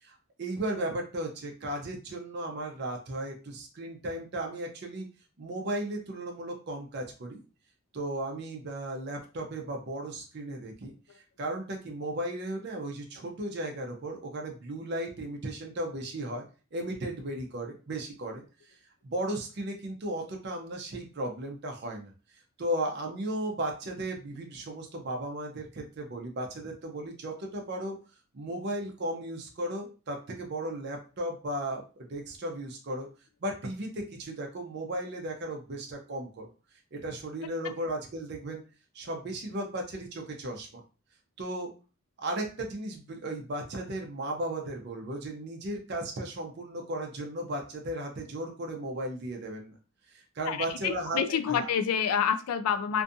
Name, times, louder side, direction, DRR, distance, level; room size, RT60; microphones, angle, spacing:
voice 1, 0.0-5.1 5.4-7.4 7.9-10.9 11.4-16.4 16.7-18.4 19.0-22.1 22.6-28.0 28.3-33.1 33.4-36.5 36.9-38.6 38.9-40.7 41.4-41.7 42.2-49.7 50.1-51.7, right 1 dB, 45° right, 1 dB, 0.5 m, -35 dB
voice 2, 50.5-53.0, left 7 dB, 80° left, 9 dB, 0.3 m, -28 dB
2.5 x 2.3 x 2.6 m, 0.35 s
head